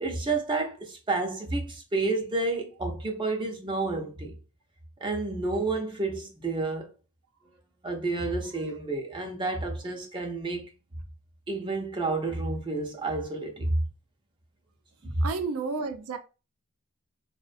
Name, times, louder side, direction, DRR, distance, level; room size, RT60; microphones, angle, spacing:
voice 1, 0.0-4.3 5.0-6.9 7.8-10.7 11.5-13.7 15.0-15.2, right 3 dB, 20° right, 0.4 m, -30 dB
voice 2, 15.2-16.2, right 4 dB, 85° right, 0.4 m, -31 dB
2.4 x 2.1 x 2.5 m
head